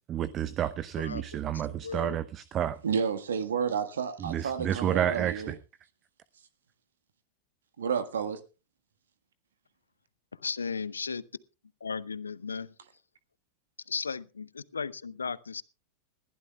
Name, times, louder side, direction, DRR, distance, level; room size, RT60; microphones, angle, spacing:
voice 1, 0.1-2.8 4.2-5.5, right 10 dB, 30° right, 0.8 m, -30 dB
voice 2, 1.0-2.2 10.3-11.2 11.8-12.7 13.9-15.6, left 5 dB, 75° left, 0.7 m, -36 dB
voice 3, 2.8-5.5 7.8-8.4, right 6 dB, 65° right, 1.5 m, -30 dB
21.0 x 15.5 x 2.3 m
figure-of-eight pair, 90°, 0 cm